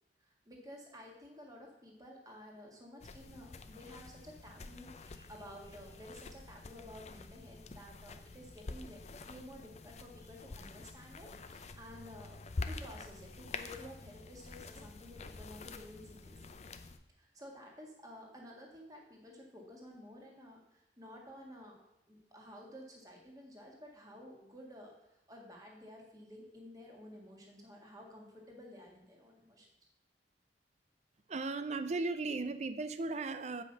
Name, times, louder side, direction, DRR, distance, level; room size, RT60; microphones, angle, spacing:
voice 1, 0.2-12.4 12.7-16.4 17.2-29.7, equal, 20° right, 1.7 m, -52 dB
sound 1, 3.0-17.0, left 3 dB, 35° left, 0.5 m, -47 dB
voice 2, 31.3-33.6, right 3 dB, 35° right, 0.5 m, -36 dB
8.3 x 5.3 x 5.6 m
head